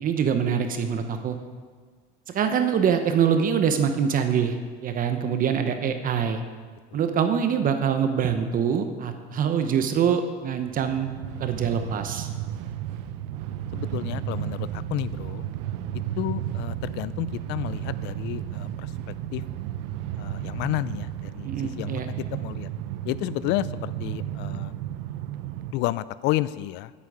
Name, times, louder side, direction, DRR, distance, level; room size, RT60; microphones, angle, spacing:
voice 1, 0.0-1.4 2.3-4.6 4.8-6.4 6.9-11.1 11.4-12.3 21.4-22.1, right 7 dB, 40° right, 7 dB, 0.9 m, -24 dB
Train, 10.6-25.7, right 11 dB, 70° right, 0.6 m, -33 dB
voice 2, 13.7-15.5 16.2-18.9 19.3-19.4 20.2-22.7 23.0-24.7 25.7-26.9, left 16 dB, 60° left, 18 dB, 0.4 m, -31 dB
10.0 x 8.5 x 4.9 m, 1.5 s
supercardioid pair, 110°, 21 cm